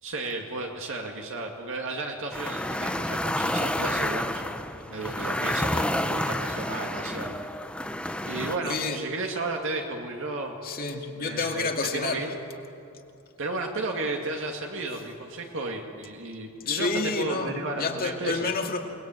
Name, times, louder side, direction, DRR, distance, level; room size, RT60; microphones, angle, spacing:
voice 1, 0.0-4.6 4.8-7.4 8.3-10.5 11.2-12.3 13.4-18.5, right 2 dB, 60° right, 2 dB, 2.3 m, -33 dB
sound 1, 2.3-8.6, left 1 dB, 5° left, 0.9 m, -29 dB
voice 2, 8.6-9.0 10.6-12.3 16.7-18.8, left 3 dB, 45° left, 3 dB, 2.4 m, -29 dB
29.5 x 20.0 x 9.2 m, 2.8 s
head